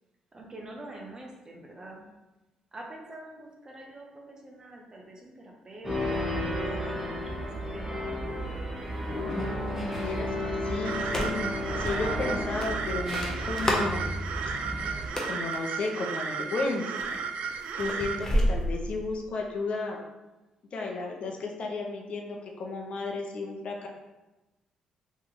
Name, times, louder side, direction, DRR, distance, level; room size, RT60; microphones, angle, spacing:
voice 1, 0.3-2.1 2.7-8.6, right 1 dB, 30° right, 0 dB, 0.9 m, -45 dB
sound 1, 5.8-15.1, left 1 dB, 10° right, 1.2 m, -33 dB
voice 2, 9.2-14.2 15.2-16.9 17.7-20.0 20.7-23.9, left 3 dB, 55° left, 1 dB, 0.7 m, -34 dB
sound 2, 10.9-18.2, right 5 dB, 70° right, 0.3 m, -34 dB
sound 3, 11.0-11.5 11.9-12.0 12.6-14.0 14.9-15.6 16.3-16.6 17.0-19.2, equal, 20° left, 0.8 m, -30 dB
3.1 x 3.0 x 3.8 m, 1.1 s
cardioid pair, 80°, 2 cm